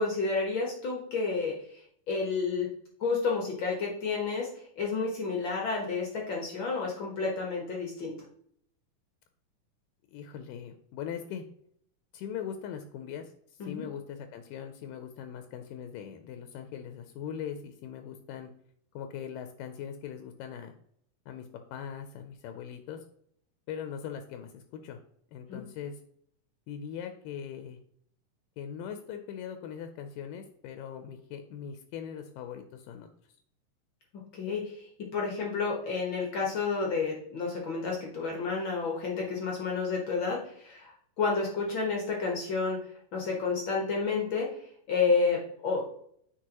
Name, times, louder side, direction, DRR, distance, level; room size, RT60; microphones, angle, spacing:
voice 1, 0.0-1.8 2.1-2.7 3.0-8.1 13.6-13.9 25.5-25.6 34.3-42.8 43.1-45.8, left 4 dB, 65° left, -1 dB, 1.2 m, -30 dB
voice 2, 10.1-11.5 12.1-18.5 18.9-20.7 21.3-23.0 23.7-25.0 25.3-26.0 26.7-27.8 28.6-33.1, left 8 dB, 85° left, 7 dB, 2.2 m, -40 dB
9.1 x 4.5 x 2.9 m, 0.67 s
omnidirectional pair, 3.9 m